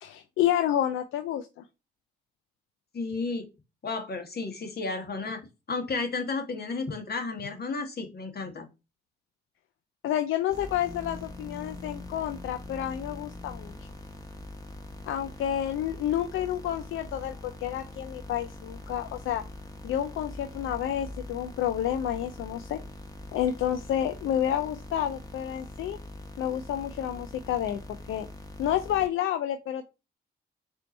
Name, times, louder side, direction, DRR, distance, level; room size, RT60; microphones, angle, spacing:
voice 1, 0.0-1.6 10.0-13.7 15.0-19.4 19.8-22.8 23.3-26.0 26.4-27.8 28.1-28.3 28.6-29.9, left 11 dB, 85° left, 9 dB, 0.4 m, -29 dB
voice 2, 2.9-3.5 3.8-5.4 5.7-8.7, left 3 dB, 50° left, 4 dB, 1.4 m, -32 dB
sound 1, 10.5-29.1, left 2 dB, 20° left, 1.2 m, -43 dB
4.3 x 2.7 x 4.1 m, 0.27 s
supercardioid pair, 50°, 20 cm